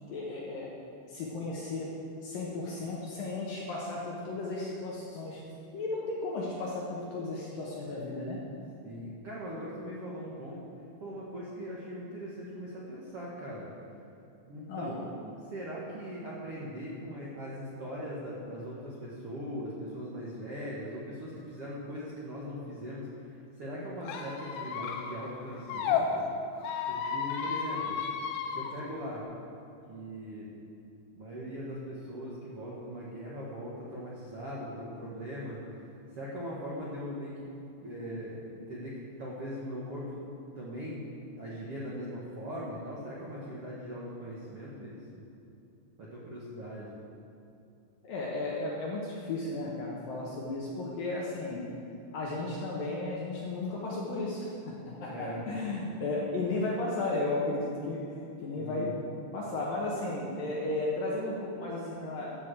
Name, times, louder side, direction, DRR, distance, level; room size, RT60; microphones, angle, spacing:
voice 1, 0.1-0.7 1.1-1.9 2.2-5.4 5.7-8.4 14.7-14.9 48.0-51.6 52.1-58.0 58.4-58.9 59.3-62.4, left 2 dB, 65° left, -4 dB, 2.4 m, -34 dB
voice 2, 8.8-10.6 11.0-13.7 14.4-15.1 15.5-26.2 26.9-28.0 28.5-29.2 29.9-30.5 31.1-35.6 36.1-37.3 37.8-40.2 40.5-41.1 41.4-45.0 46.0-47.0 55.0-55.5 58.5-59.0, equal, 60° right, -7 dB, 1.5 m, -40 dB
Squeak, 24.0-26.0 26.6-28.7, left 7 dB, 90° left, 3.5 m, -33 dB
13.5 x 6.5 x 7.8 m, 2.7 s
omnidirectional pair, 5.4 m